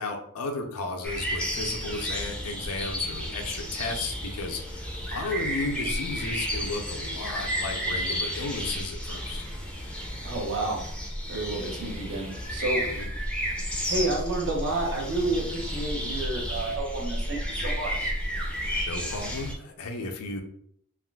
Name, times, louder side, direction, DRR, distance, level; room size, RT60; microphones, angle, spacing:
voice 1, 0.0-9.5 12.9-13.1 18.9-20.4, left 3 dB, 90° left, 4 dB, 0.6 m, -34 dB
sound 1, 1.0-19.5, equal, 5° left, 0.5 m, -32 dB
voice 2, 10.2-10.8 11.3-12.8 13.9-18.1, right 2 dB, 55° right, -1 dB, 0.9 m, -30 dB
3.5 x 2.5 x 2.3 m, 0.68 s
head